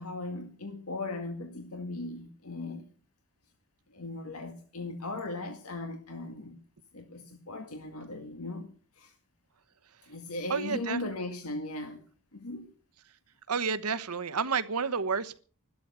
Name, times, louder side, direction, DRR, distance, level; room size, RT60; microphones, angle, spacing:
voice 1, 0.0-2.9 3.9-6.6 6.9-8.7 9.0-9.1 10.1-12.0 12.3-12.7, left 2 dB, 75° left, 1.9 m, -38 dB
voice 2, 10.5-11.0 13.5-15.4, right 5 dB, 85° right, 1.1 m, -30 dB
14.5 x 12.5 x 6.9 m
head